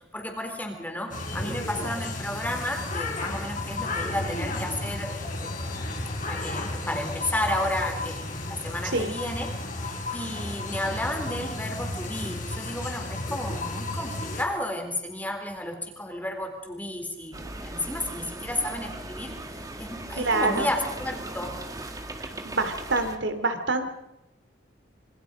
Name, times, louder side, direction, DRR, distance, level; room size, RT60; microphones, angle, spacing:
voice 1, 0.0-5.9 6.3-9.5 9.8-19.4 19.8-21.6, left 1 dB, 10° left, 3 dB, 3.9 m, -32 dB
sound 1, 1.1-14.4, left 2 dB, 45° left, 4.4 m, -33 dB
sound 2, 17.3-23.2, right 1 dB, 20° right, 1.7 m, -38 dB
voice 2, 20.2-20.7 22.2-23.9, right 3 dB, 80° right, 8 dB, 2.9 m, -26 dB
27.0 x 25.0 x 5.2 m, 0.89 s
head